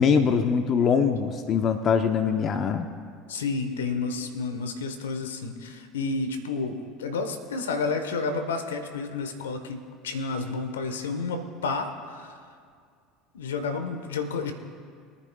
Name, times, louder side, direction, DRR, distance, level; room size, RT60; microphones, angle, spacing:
voice 1, 0.0-2.9, left 6 dB, 45° left, 8 dB, 0.7 m, -23 dB
voice 2, 3.3-12.3 13.3-14.5, left 4 dB, 85° left, 7 dB, 1.1 m, -30 dB
23.0 x 9.9 x 2.3 m, 2.1 s
hypercardioid pair, 75°, 0 cm